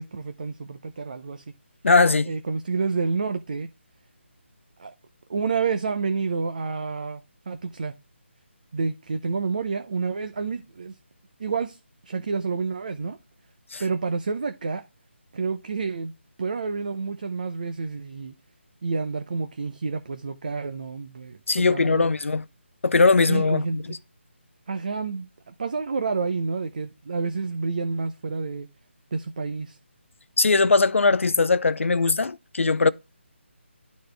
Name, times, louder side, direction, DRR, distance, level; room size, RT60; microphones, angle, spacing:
voice 1, 0.0-1.4 2.3-3.7 4.8-4.9 5.3-7.2 7.5-7.9 8.7-11.0 11.4-13.2 13.8-14.8 15.3-16.1 16.4-18.3 18.8-22.1 23.3-23.8 24.7-28.7 29.1-29.8, right 4 dB, 40° right, 0.6 m, -29 dB
voice 2, 1.8-2.3 13.7-13.8 21.5-22.4 22.8-24.0 30.4-32.9, left 3 dB, 85° left, 0.6 m, -20 dB
11.5 x 4.2 x 3.3 m
hypercardioid pair, 170°, 7 cm